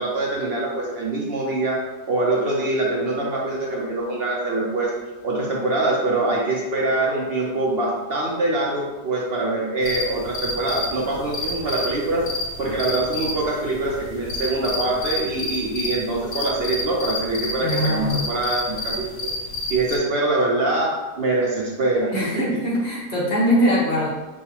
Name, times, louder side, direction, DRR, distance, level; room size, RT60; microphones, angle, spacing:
voice 1, 0.0-1.8 2.1-4.9 5.2-12.3 12.6-19.3 19.7-22.4, right 2 dB, 60° right, -3 dB, 0.6 m, -24 dB
sound 1, 9.8-20.0, left 2 dB, 85° left, 1.2 m, -30 dB
voice 2, 17.6-18.2 22.1-24.1, equal, 45° left, -6 dB, 1.2 m, -22 dB
6.2 x 2.4 x 2.8 m, 1.2 s
omnidirectional pair, 1.7 m